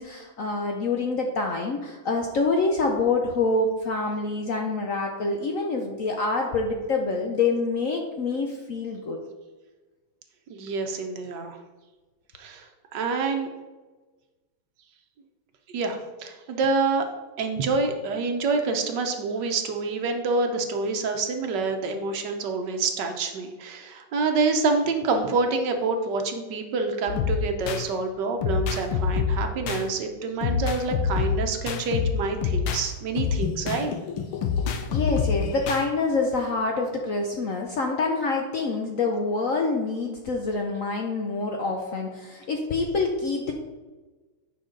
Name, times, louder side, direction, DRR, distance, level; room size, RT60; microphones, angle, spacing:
voice 1, 0.0-9.2 34.7-43.5, left 3 dB, 70° left, 2 dB, 0.7 m, -26 dB
voice 2, 10.5-11.6 12.4-13.5 15.7-17.1 17.4-33.9, right 4 dB, 65° right, 5 dB, 1.3 m, -27 dB
sound 1, 27.1-27.9 28.4-29.9 30.4-32.9 33.2-35.9, left 6 dB, 85° left, 1.6 m, -26 dB
8.6 x 5.6 x 3.8 m, 1.2 s
omnidirectional pair, 2.3 m